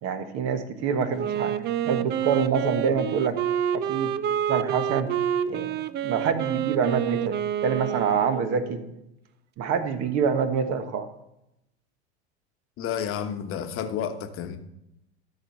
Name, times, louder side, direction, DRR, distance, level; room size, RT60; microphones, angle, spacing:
voice 1, 0.0-1.5 1.8-3.4 3.7-4.1 4.5-5.1 5.5-7.3 7.6-8.8 9.6-11.1, right 6 dB, 45° right, 1.3 m, -26 dB
Wind instrument woodwind instrument, 1.1-8.9, right 10 dB, 30° right, 0.4 m, -28 dB
voice 2, 12.8-14.6, left 8 dB, 40° left, 1.1 m, -31 dB
13.0 x 4.4 x 5.4 m
hypercardioid pair, 100°, 34 cm